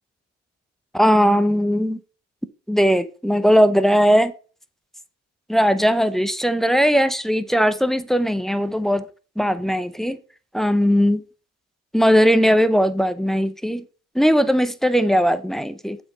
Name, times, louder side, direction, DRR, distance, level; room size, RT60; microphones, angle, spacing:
voice 1, 0.9-2.0 2.7-4.3 5.5-9.1 9.4-10.2 10.5-11.2 11.9-13.8 14.2-16.0, equal, ahead, 0.6 m, -18 dB
7.7 x 4.6 x 5.4 m
cardioid pair, 90°, 30 cm